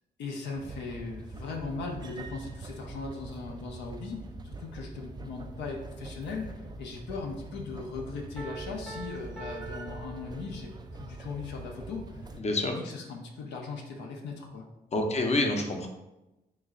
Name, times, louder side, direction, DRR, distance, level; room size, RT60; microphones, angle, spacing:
voice 1, 0.2-12.0 12.3-12.4 12.6-14.6, left 4 dB, 80° left, 0 dB, 0.5 m, -38 dB
sound 1, 0.5-12.4, right 2 dB, 25° right, 0.3 m, -44 dB
Piano, 8.4-10.9, right 4 dB, ahead, 0.7 m, -44 dB
voice 2, 12.4-12.8 14.9-15.9, left 2 dB, 35° left, 3 dB, 0.7 m, -27 dB
3.1 x 2.3 x 3.6 m, 0.97 s
supercardioid pair, 55°, 18 cm